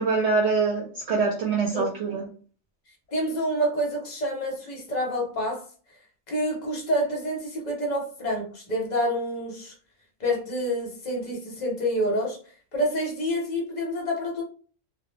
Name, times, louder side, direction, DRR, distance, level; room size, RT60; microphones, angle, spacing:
voice 1, 0.0-2.3, right 4 dB, 70° right, 0.9 m, -24 dB
voice 2, 3.1-5.7 6.3-9.7 10.2-12.4 12.7-14.4, equal, 45° left, 0.8 m, -28 dB
2.2 x 2.1 x 3.1 m
omnidirectional pair, 1.2 m